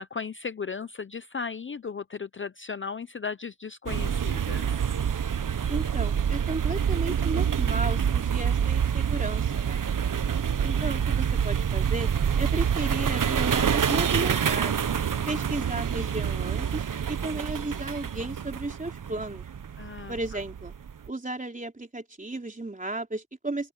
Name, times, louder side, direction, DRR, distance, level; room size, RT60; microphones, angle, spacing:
voice 1, 0.0-4.8 19.8-20.4, left 5 dB, 35° left, 0.5 m, -36 dB
sound 1, 3.9-21.1, right 8 dB, 65° right, 0.9 m, -27 dB
voice 2, 5.7-9.8 10.6-12.1 12.4-14.9 15.3-19.4 20.1-20.7 21.1-23.7, right 2 dB, 20° right, 3.8 m, -34 dB
open air
wide cardioid pair, 115°, 35 cm